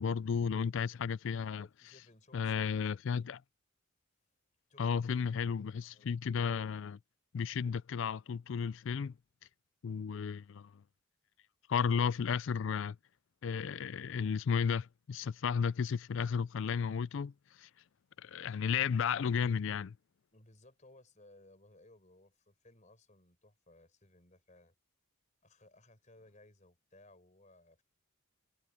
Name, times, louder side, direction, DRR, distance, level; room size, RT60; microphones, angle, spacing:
voice 1, 0.0-1.7 2.3-3.4 4.8-7.0 7.3-9.1 9.8-10.7 11.7-13.0 13.4-17.3 17.6-17.7 18.2-20.0, left 6 dB, 60° left, 0.4 m, -33 dB
voice 2, 1.6-3.0 4.7-5.0 5.9-6.1 20.3-24.7 25.4-27.8, left 2 dB, 35° left, 4.5 m, -61 dB
head